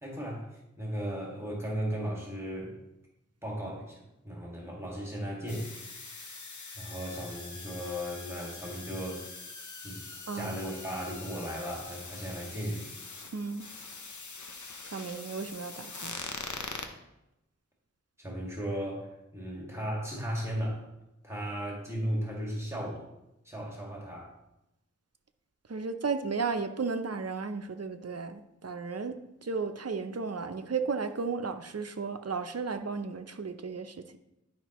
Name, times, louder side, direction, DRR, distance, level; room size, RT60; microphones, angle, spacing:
voice 1, 0.0-2.8 3.4-5.7 6.7-9.3 9.8-12.9 18.2-20.8 21.2-23.1 23.4-24.3, equal, 10° right, -3 dB, 1.9 m, -36 dB
sound 1, 5.5-16.9, left 4 dB, 80° left, 0.8 m, -43 dB
voice 2, 10.3-10.6 13.3-13.7 14.8-16.2 25.7-34.2, right 4 dB, 55° right, 7 dB, 0.6 m, -34 dB
11.0 x 5.1 x 3.0 m, 0.89 s
wide cardioid pair, 40°, 29 cm